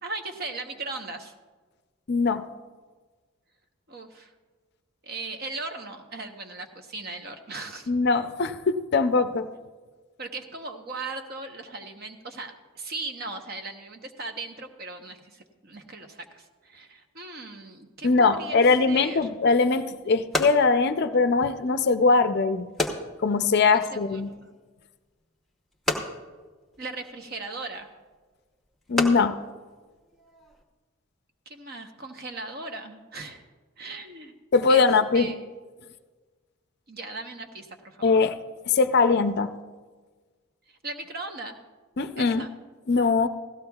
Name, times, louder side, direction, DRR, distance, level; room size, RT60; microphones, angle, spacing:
voice 1, 0.0-1.3 3.9-4.3 5.0-7.9 10.2-19.2 23.7-24.5 26.8-27.9 31.5-33.4 33.8-34.3 34.7-34.9 35.1-35.4 36.9-38.1 40.7-41.6 42.2-42.5, right 3 dB, 45° right, 5 dB, 0.9 m, -38 dB
voice 2, 2.1-2.4 7.9-9.5 18.0-22.7 23.2-24.3 28.9-29.4 34.5-35.3 38.0-38.4 38.7-39.5 42.0-42.5 42.9-43.3, left 4 dB, 50° left, 10 dB, 0.4 m, -21 dB
sound 1, 19.3-30.6, left 2 dB, ahead, 0.9 m, -35 dB
17.0 x 14.0 x 2.3 m, 1.4 s
head